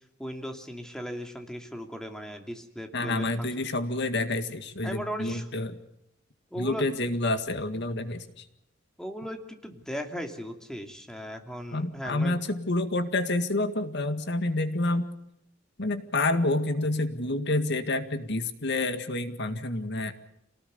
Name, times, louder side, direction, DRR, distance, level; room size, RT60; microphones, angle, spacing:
voice 1, 0.2-3.5 4.8-5.5 6.5-6.9 9.0-12.4, equal, 5° left, 4 dB, 2.8 m, -37 dB
voice 2, 2.9-5.8 6.6-8.5 11.7-15.1 15.8-20.1, left 2 dB, 60° left, 10 dB, 1.9 m, -28 dB
26.5 x 19.0 x 7.0 m, 0.81 s
head